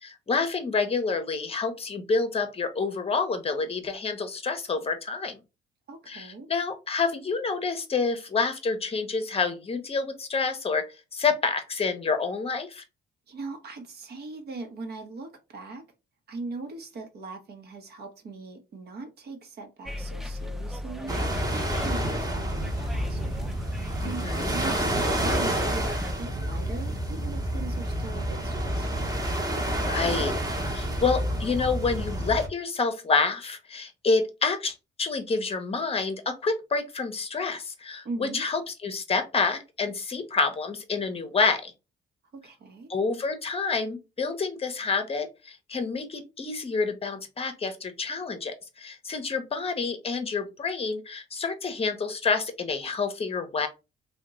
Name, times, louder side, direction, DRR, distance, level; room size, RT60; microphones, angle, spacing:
voice 1, 0.0-5.4 6.1-10.8 11.1-12.8 24.0-24.6 29.9-30.3 30.6-41.7 42.9-53.7, left 4 dB, 30° left, 0.7 m, -28 dB
voice 2, 5.9-6.5 13.3-15.8 16.3-21.1 21.5-23.3 24.0-29.2 38.0-38.4 42.3-42.9, right 3 dB, 55° right, 0.9 m, -40 dB
sound 1, 19.9-26.1, left 1 dB, ahead, 0.4 m, -39 dB
sound 2, 21.1-32.5, right 1 dB, 20° right, 0.9 m, -29 dB
2.8 x 2.2 x 3.6 m
cardioid pair, 90°, 20 cm